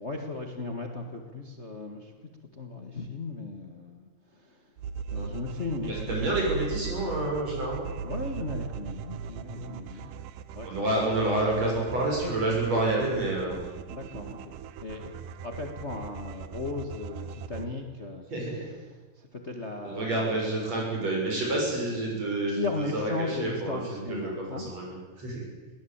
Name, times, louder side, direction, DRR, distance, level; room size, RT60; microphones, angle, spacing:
voice 1, 0.0-4.7 5.1-6.5 8.0-10.1 10.5-11.0 12.2-12.4 13.9-14.5 14.8-15.1 15.4-18.7 19.1-20.5 20.9-21.0 22.0-22.2 22.5-24.7, left 3 dB, 85° left, 4 dB, 0.6 m, -37 dB
sound 1, 4.8-17.7, right 6 dB, 75° right, 2.1 m, -39 dB
voice 2, 5.9-7.9 9.6-9.7 10.6-13.6 18.3-18.7 19.8-24.3 24.6-25.4, right 2 dB, 40° right, -1 dB, 7.8 m, -29 dB
22.0 x 17.5 x 8.8 m, 1.3 s
omnidirectional pair, 4.6 m